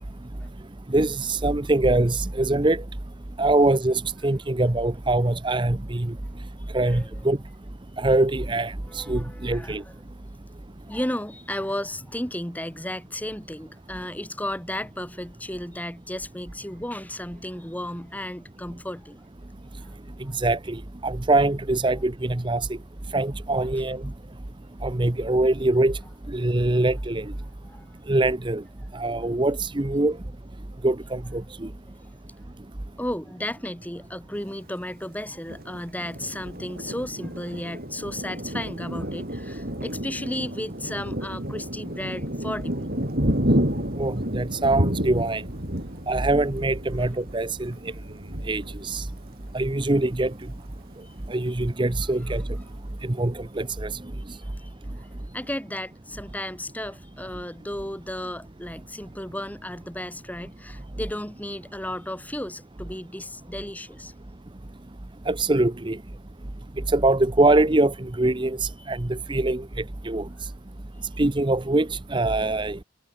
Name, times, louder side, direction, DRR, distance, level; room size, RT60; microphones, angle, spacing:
voice 1, 0.9-2.8 3.4-6.1 6.7-7.4 8.0-9.8 20.3-22.7 23.1-24.0 24.8-26.0 26.3-27.2 28.1-28.6 28.9-30.2 30.8-31.7 44.0-45.4 46.1-47.7 48.5-49.1 49.5-50.3 51.3-52.4 53.1-53.9 65.3-66.0 66.9-69.6 70.0-70.3 71.2-72.8, right 2 dB, 25° right, 0.8 m, -23 dB
voice 2, 6.7-7.2 8.8-9.9 10.8-19.2 20.3-20.4 27.6-27.9 31.6-31.7 33.0-42.9 51.0-51.1 52.3-52.4 54.4-54.7 55.0-64.1 68.8-69.0, left 1 dB, 10° left, 5.3 m, -34 dB
Thunder, 35.5-49.8 50.3-50.4 50.7-51.3, equal, 50° right, 7.4 m, -30 dB
head